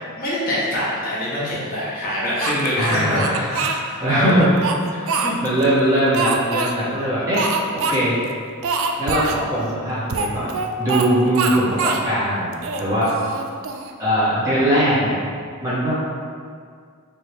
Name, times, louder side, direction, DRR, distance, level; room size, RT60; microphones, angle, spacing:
voice 1, 0.0-3.2 3.5-4.4, left 1 dB, 40° left, -7 dB, 0.8 m, -24 dB
Speech, 2.4-3.8 4.4-5.7 6.1-6.7 7.3-8.0 8.2-8.3 8.6-9.4 10.1-11.1 11.3-12.0 12.5-13.9, right 4 dB, 60° right, 0.3 m, -24 dB
voice 2, 2.7-3.4 4.0-4.7 4.9-7.5 7.8-8.2 9.0-10.5 10.8-12.5 12.8-13.1 14.0-15.2 15.6-15.9, equal, 15° right, -11 dB, 1.2 m, -20 dB
4.5 x 2.5 x 3.3 m, 2.1 s
head